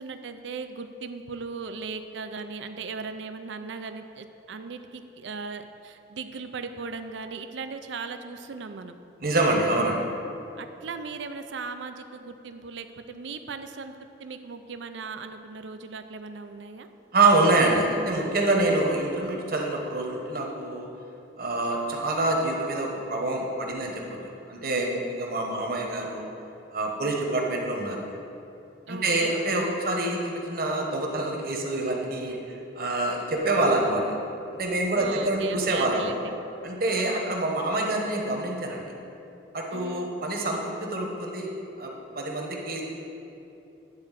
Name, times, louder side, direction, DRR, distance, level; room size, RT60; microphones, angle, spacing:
voice 1, 0.0-9.0 10.6-16.9 28.9-29.4 34.9-36.4 36.9-37.4 39.7-40.2, right 4 dB, 70° right, 8 dB, 0.5 m, -38 dB
voice 2, 9.2-10.0 17.1-20.9 21.4-26.3 26.7-28.1 28.9-34.1 34.5-36.1 36.6-38.9 39.5-41.5 41.8-42.8, right 2 dB, 50° right, 0 dB, 1.2 m, -26 dB
9.7 x 4.4 x 7.4 m, 2.8 s
head